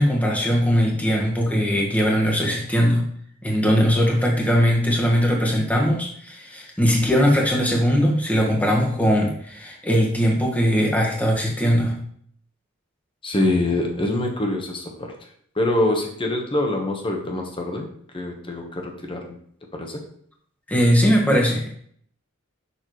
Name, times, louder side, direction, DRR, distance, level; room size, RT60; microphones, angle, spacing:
voice 1, 0.0-3.0 3.4-12.0 20.7-21.7, equal, 5° left, -1 dB, 1.4 m, -20 dB
voice 2, 13.2-15.1 15.6-17.9 18.1-19.4 19.7-20.0, left 1 dB, 25° left, 2 dB, 1.2 m, -24 dB
6.9 x 5.8 x 3.1 m, 0.62 s
head